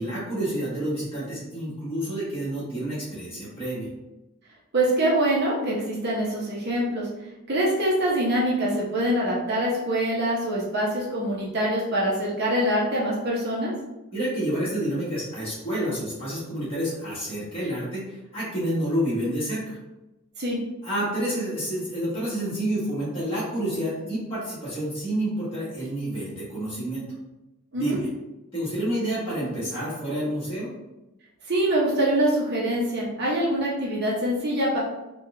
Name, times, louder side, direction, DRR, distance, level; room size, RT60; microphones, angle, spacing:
voice 1, 0.0-3.9 14.1-19.8 20.8-27.1 27.7-28.1 28.5-30.7, right 1 dB, 25° left, -9 dB, 1.4 m, -29 dB
voice 2, 4.7-7.1 7.5-13.7 20.4-20.6 27.7-28.0 31.5-34.8, right 1 dB, 45° right, -4 dB, 0.7 m, -24 dB
3.9 x 2.4 x 2.7 m, 1.0 s
head